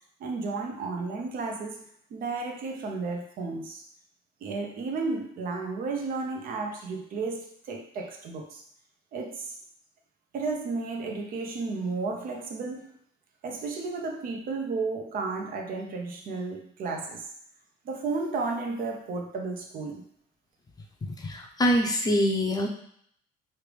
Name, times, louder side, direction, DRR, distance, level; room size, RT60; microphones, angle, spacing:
voice 1, 0.2-3.8 4.4-8.6 9.1-9.5 10.3-12.9 13.4-17.3 17.8-20.1, right 3 dB, 60° right, 3 dB, 0.6 m, -33 dB
voice 2, 21.0-22.7, equal, 20° left, 1 dB, 0.6 m, -25 dB
3.2 x 2.5 x 3.3 m, 0.66 s
cardioid pair, 110°, 17 cm